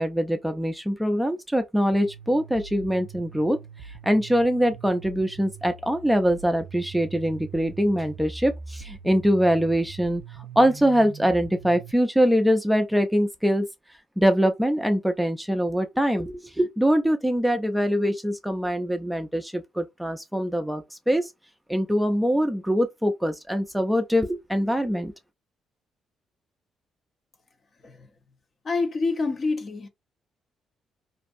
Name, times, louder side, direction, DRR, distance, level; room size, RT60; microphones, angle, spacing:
voice 1, 0.0-3.6 4.0-10.2 10.6-13.7 14.2-21.3 21.7-25.1, equal, 5° right, 0.4 m, -23 dB
sound 1, 1.9-11.9, right 6 dB, 85° right, 0.4 m, -42 dB
voice 2, 28.6-29.9, left 3 dB, 40° left, 0.6 m, -27 dB
2.5 x 2.2 x 2.5 m
cardioid pair, 90°, 0 cm